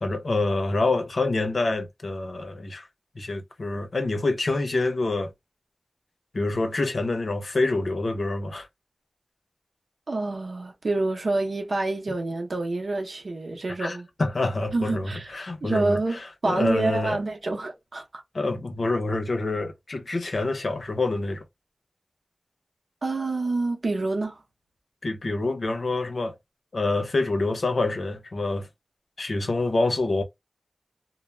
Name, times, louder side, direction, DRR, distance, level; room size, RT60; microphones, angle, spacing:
voice 1, 0.0-2.9 3.1-5.3 6.3-8.7 13.8-17.2 18.3-21.4 25.0-26.4 26.7-28.7 29.2-30.2, left 2 dB, 80° left, 0.6 m, -26 dB
voice 2, 10.1-14.1 14.7-15.3 15.6-18.2 23.0-24.4, right 2 dB, 80° right, 0.7 m, -27 dB
2.2 x 2.1 x 3.1 m
wide cardioid pair, 55°, 0 cm